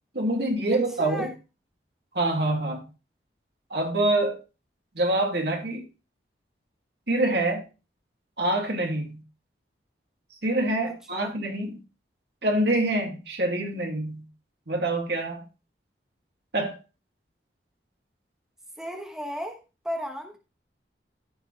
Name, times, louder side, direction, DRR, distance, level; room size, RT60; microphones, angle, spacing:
voice 1, 0.1-1.3 2.1-2.8 3.7-4.4 4.9-5.8 7.1-7.6 8.4-9.2 10.4-11.8 12.4-14.2 14.7-15.4 16.5-16.8, right 1 dB, 65° right, 2.3 m, -25 dB
voice 2, 0.7-1.3 10.8-11.3 18.8-20.4, equal, 5° right, 1.0 m, -35 dB
14.0 x 5.1 x 3.2 m
head